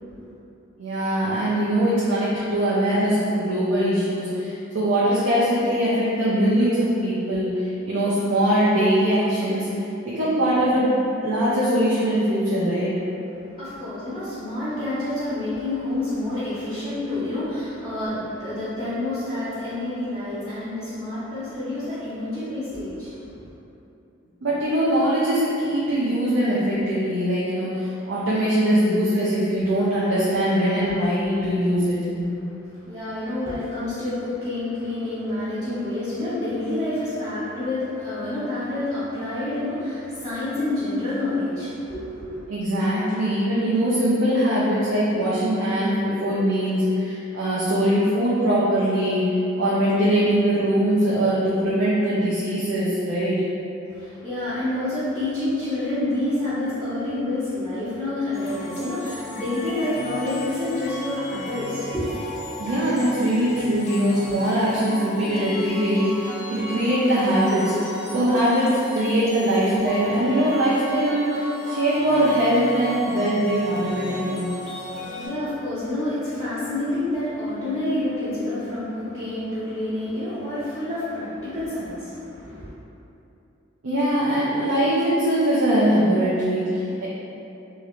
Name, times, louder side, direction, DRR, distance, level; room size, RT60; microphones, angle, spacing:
voice 1, 0.8-11.0 11.2-12.9 24.4-32.3 42.5-53.4 62.6-74.5 83.8-87.1, equal, 75° right, -8 dB, 0.5 m, -22 dB
voice 2, 13.6-23.5 32.8-42.5 53.9-62.3 74.4-82.7, left 1 dB, 20° right, -15 dB, 0.8 m, -28 dB
sound 1, 58.3-75.3, equal, 35° left, 0.5 m, -35 dB
3.1 x 2.4 x 3.0 m, 2.7 s
head